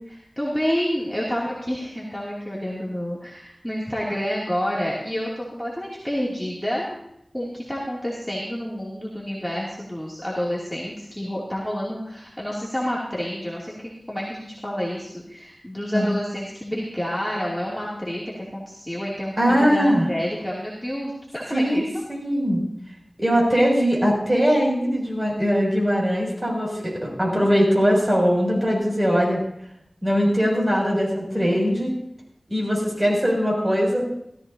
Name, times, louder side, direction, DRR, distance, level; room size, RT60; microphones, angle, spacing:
voice 1, 0.1-7.0 7.3-21.8, equal, 5° left, -6 dB, 2.8 m, -29 dB
voice 2, 19.4-20.1 21.5-22.6 23.2-29.4 30.0-31.9 32.5-34.0, equal, 20° right, -2 dB, 6.7 m, -21 dB
17.0 x 14.0 x 2.8 m, 0.76 s
wide cardioid pair, 60°, 0 cm